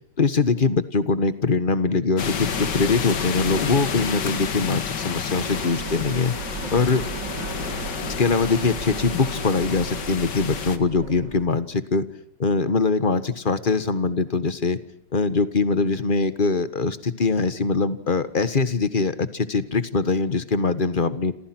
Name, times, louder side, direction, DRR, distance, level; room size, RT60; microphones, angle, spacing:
voice 1, 0.2-6.4 6.7-7.0 8.2-12.0 12.4-14.8 15.1-21.3, left 4 dB, 30° left, 13 dB, 1.5 m, -22 dB
sound 1, 2.2-10.8, left 6 dB, 60° left, 2.2 m, -30 dB
sound 2, 5.3-11.5, right 4 dB, 60° right, 2.9 m, -36 dB
29.5 x 27.5 x 6.2 m, 0.64 s
omnidirectional pair, 2.2 m